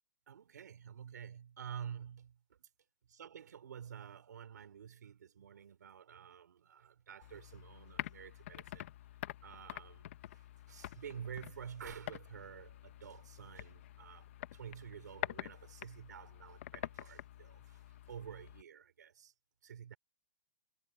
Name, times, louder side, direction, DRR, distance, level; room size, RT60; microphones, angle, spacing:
voice 1, 0.3-2.4 3.1-8.9 9.4-17.8 18.1-19.3 19.6-20.0, right 8 dB, 85° right, 4.8 m, -50 dB
sound 1, 7.2-18.6, left 13 dB, 45° left, 1.2 m, -47 dB
hypercardioid pair, 170°, 9 cm